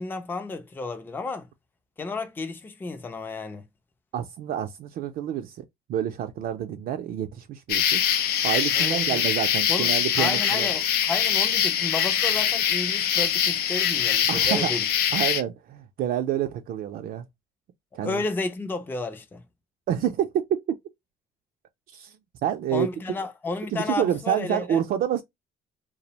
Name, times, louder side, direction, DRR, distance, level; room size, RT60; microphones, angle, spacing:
voice 1, 0.0-1.5 2.0-3.6 8.7-9.2 9.7-9.9 10.2-14.8 18.0-19.4 22.7-24.8, left 3 dB, 10° left, 0.4 m, -32 dB
voice 2, 4.1-5.6 5.9-8.0 8.4-10.7 14.3-14.7 15.1-17.2 17.9-18.2 19.9-20.8 21.9-22.1 22.4-22.9 23.7-25.2, right 10 dB, 60° right, 0.4 m, -28 dB
sound 1, 7.7-15.4, left 9 dB, 70° left, 0.4 m, -23 dB
2.4 x 2.0 x 2.8 m
cardioid pair, 110°, 17 cm